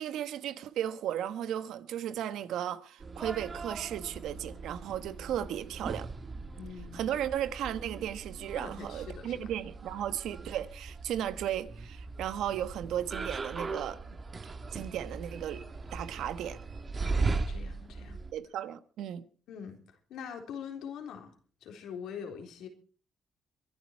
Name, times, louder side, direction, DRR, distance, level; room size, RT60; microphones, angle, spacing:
voice 1, 0.0-6.1 6.9-14.0 14.7-15.6 15.9-16.6 18.3-19.2, right 10 dB, 80° right, 1.2 m, -35 dB
sound 1, 3.0-18.3, right 3 dB, 35° right, 1.8 m, -39 dB
voice 2, 6.5-7.1 8.5-9.4 17.0-18.2 19.5-21.3 21.6-22.7, left 7 dB, 85° left, 3.7 m, -43 dB
23.0 x 11.0 x 4.6 m
cardioid pair, 90°, 0 cm